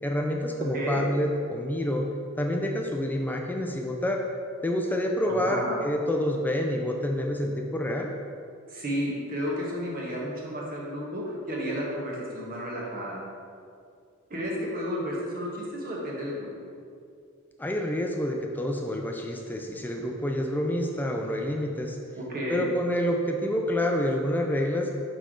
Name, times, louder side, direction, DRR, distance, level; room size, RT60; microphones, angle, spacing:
voice 1, 0.0-2.1 2.4-4.2 4.6-8.1 17.6-22.0 22.5-25.0, left 1 dB, 10° left, 2 dB, 0.3 m, -28 dB
voice 2, 5.3-5.8 8.7-13.2 14.3-16.5 22.2-22.6, equal, 45° right, -4 dB, 1.2 m, -32 dB
5.5 x 4.9 x 3.7 m, 2.3 s
head